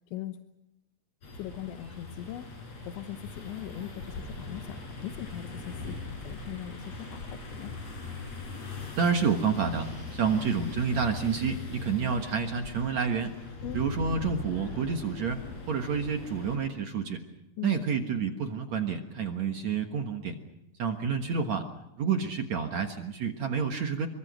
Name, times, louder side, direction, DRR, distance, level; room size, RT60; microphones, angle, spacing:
sound 1, 1.2-16.6, left 3 dB, 35° left, 5.6 m, -40 dB
voice 1, 1.3-2.5 2.9-5.8 6.3-7.7 13.6-13.8 17.6-17.8, left 12 dB, 90° left, 6 dB, 3.5 m, -40 dB
voice 2, 9.0-13.3 13.7-15.4 15.7-17.2 17.6-20.3 20.8-21.7 22.0-24.1, right 6 dB, 60° right, 4 dB, 1.9 m, -29 dB
26.5 x 24.0 x 6.3 m, 0.87 s
omnidirectional pair, 5.2 m